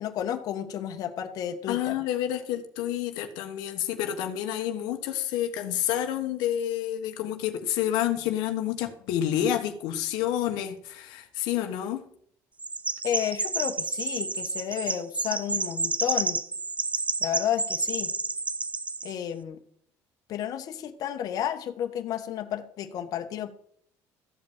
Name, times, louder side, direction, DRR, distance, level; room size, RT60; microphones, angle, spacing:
voice 1, 0.0-2.0 13.0-16.4 17.2-18.1 19.0-19.6 20.3-23.5, left 10 dB, 60° left, 6 dB, 1.4 m, -31 dB
voice 2, 1.7-12.0, left 11 dB, 85° left, 5 dB, 1.4 m, -29 dB
Chirp tweet, 12.6-19.1, right 3 dB, 20° right, 0.7 m, -30 dB
14.0 x 5.4 x 8.8 m, 0.63 s
cardioid pair, 115°, 7 cm